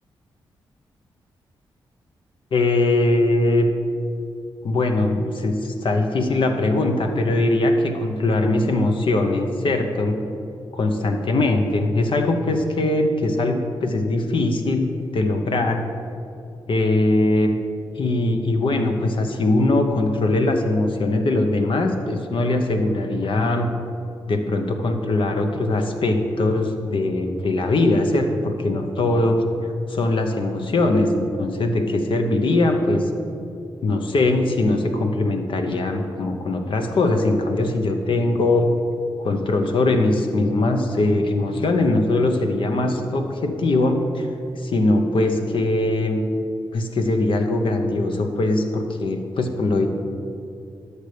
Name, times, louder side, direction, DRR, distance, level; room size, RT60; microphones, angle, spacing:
voice 1, 2.5-3.7 4.6-10.2 10.7-15.8 16.7-17.6 18.0-23.7 24.3-29.4 29.9-33.1 33.8-38.7 39.2-44.3 44.6-46.2 46.7-49.9, left 2 dB, 60° left, 5 dB, 0.9 m, -21 dB
11.0 x 6.7 x 3.3 m, 2.6 s
supercardioid pair, 50°, 10 cm